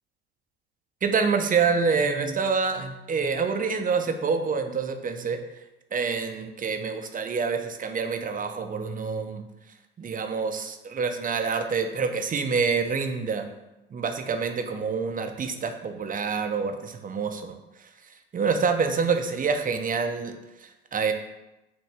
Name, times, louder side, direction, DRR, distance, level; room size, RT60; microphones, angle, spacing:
voice 1, 1.0-5.4 5.9-9.4 10.0-13.5 13.9-17.5 18.3-20.3 20.6-21.1, right 5 dB, 25° right, 6 dB, 0.6 m, -27 dB
5.7 x 2.6 x 3.3 m, 0.97 s
hypercardioid pair, 70°, 32 cm